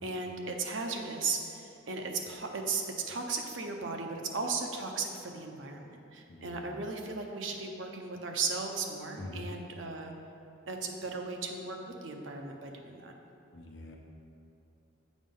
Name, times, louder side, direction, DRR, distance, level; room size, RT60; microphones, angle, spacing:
voice 1, 0.0-10.1 10.7-11.8 12.0-13.1, right 4 dB, 80° right, 3 dB, 0.7 m, -36 dB
voice 2, 6.3-6.8 9.2-9.6 13.5-14.0, left 1 dB, 65° left, 0 dB, 0.9 m, -44 dB
7.2 x 5.2 x 3.7 m, 2.7 s
head